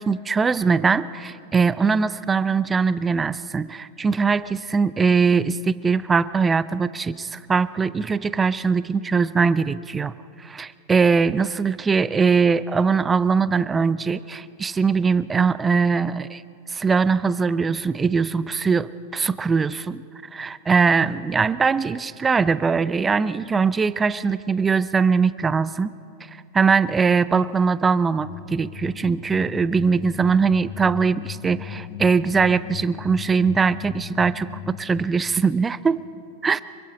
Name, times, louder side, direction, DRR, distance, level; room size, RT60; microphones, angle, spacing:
voice 1, 0.0-16.4 16.7-20.0 20.3-25.9 26.5-36.0 36.4-36.6, right 5 dB, 15° right, 17 dB, 0.5 m, -21 dB
sound 1, 28.1-35.5, left 10 dB, 30° left, 1.1 m, -37 dB
26.5 x 24.0 x 5.3 m, 2.4 s
figure-of-eight pair, 90°, 0 cm